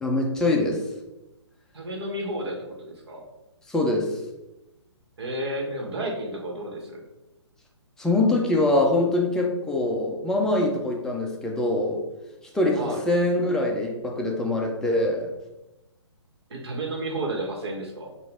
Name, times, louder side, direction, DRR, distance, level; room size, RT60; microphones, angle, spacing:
voice 1, 0.0-0.8 3.7-4.2 8.0-12.0 12.5-15.3, left 2 dB, 5° left, -1 dB, 0.4 m, -23 dB
voice 2, 1.7-3.2 5.2-7.0 12.8-13.0 16.5-18.1, right 1 dB, 60° right, 0 dB, 1.4 m, -32 dB
5.8 x 2.5 x 3.5 m, 0.98 s
figure-of-eight pair, 135°, 15 cm